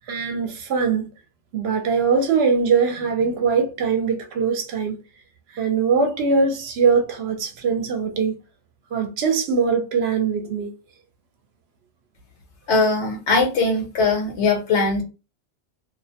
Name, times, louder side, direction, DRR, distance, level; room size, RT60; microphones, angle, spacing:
voice 1, 0.1-1.1 1.5-4.9 5.5-8.4 8.9-10.7, right 5 dB, 70° right, 0.8 m, -21 dB
voice 2, 12.7-15.0, left 3 dB, 75° left, 1.1 m, -20 dB
2.4 x 2.0 x 2.7 m
omnidirectional pair, 1.2 m